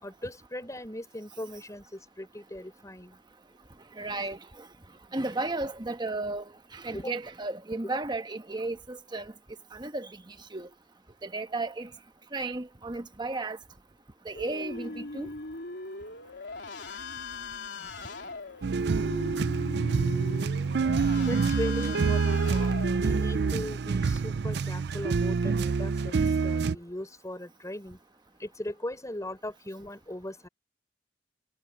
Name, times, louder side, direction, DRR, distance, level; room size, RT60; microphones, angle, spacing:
voice 1, 0.0-3.2 6.9-7.2 7.9-8.0 21.2-28.0 28.4-30.5, left 1 dB, 20° left, 4.0 m, -39 dB
voice 2, 4.0-4.4 5.1-6.4 6.7-9.3 9.7-10.1 10.5-10.7 11.2-11.9 12.3-13.6 14.2-15.3, right 2 dB, 25° right, 1.2 m, -33 dB
sound 1, 14.4-23.5, left 3 dB, 85° left, 3.6 m, -40 dB
sound 2, 18.6-26.8, right 4 dB, 65° right, 0.4 m, -27 dB
head